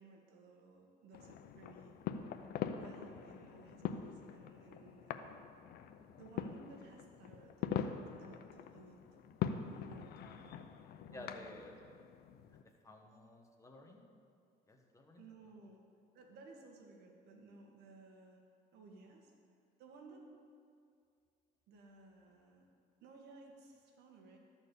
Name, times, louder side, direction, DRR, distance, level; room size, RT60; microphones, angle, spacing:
voice 1, 0.0-2.0 2.7-5.4 6.2-7.9 8.2-9.0 9.6-10.7 11.1-11.6 15.2-15.8 16.1-18.4 18.7-19.3 19.8-20.3 21.7-22.7 23.0-24.4, right 3 dB, 75° right, 2 dB, 1.4 m, -58 dB
sound 1, 1.1-12.6, left 8 dB, 70° left, 0.6 m, -43 dB
voice 2, 10.2-10.5 11.1-11.7 12.8-14.0 14.7-15.2, left 2 dB, 20° left, 1 dB, 1.3 m, -53 dB
13.0 x 4.4 x 6.8 m, 2.3 s
cardioid pair, 110°, 17 cm